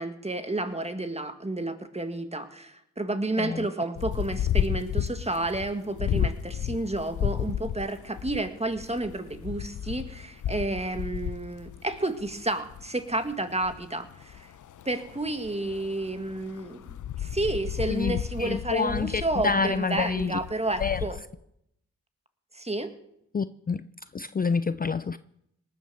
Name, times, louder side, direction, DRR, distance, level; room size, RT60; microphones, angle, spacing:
voice 1, 0.0-14.5 14.9-16.8 17.2-21.2 22.5-22.9, right 2 dB, 20° right, 1.8 m, -31 dB
sound 1, 4.0-21.2, left 9 dB, 85° left, 0.7 m, -33 dB
voice 2, 17.9-20.4 20.8-21.0 23.3-23.9 24.1-25.2, left 5 dB, 30° left, 0.5 m, -28 dB
19.0 x 9.5 x 6.9 m
cardioid pair, 60°, 30 cm